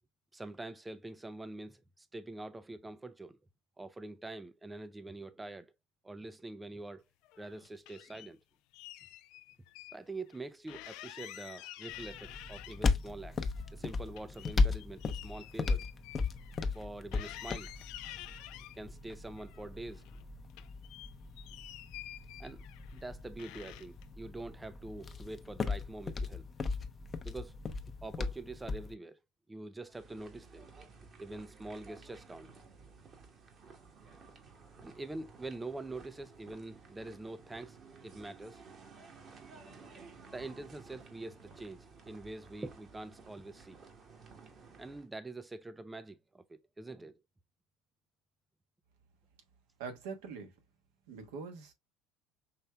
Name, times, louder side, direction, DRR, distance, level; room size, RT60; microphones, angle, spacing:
voice 1, 0.3-3.4 3.8-5.7 6.0-7.0 7.4-8.4 9.9-15.8 16.7-17.7 18.7-20.1 22.4-22.6 22.9-26.4 27.2-27.6 28.0-29.2 29.5-30.7 31.0-32.6 34.8-37.8 38.0-38.6 40.3-43.8 44.8-47.2, right 2 dB, 15° right, 0.4 m, -45 dB
sound 1, 7.2-8.3 8.7-10.0 10.3-10.4 10.7-13.1 13.4-16.9 17.1-18.8 19.4-20.2 20.5-23.0 23.4-24.1, left 14 dB, 65° left, 0.4 m, -49 dB
sound 2, 11.9-28.9, left 4 dB, 30° left, 0.7 m, -37 dB
sound 3, 29.9-45.1, right 4 dB, 40° right, 1.4 m, -55 dB
voice 2, 49.8-50.5 51.1-51.7, right 5 dB, 75° right, 1.3 m, -43 dB
5.5 x 3.2 x 2.2 m
hypercardioid pair, 75°, 0 cm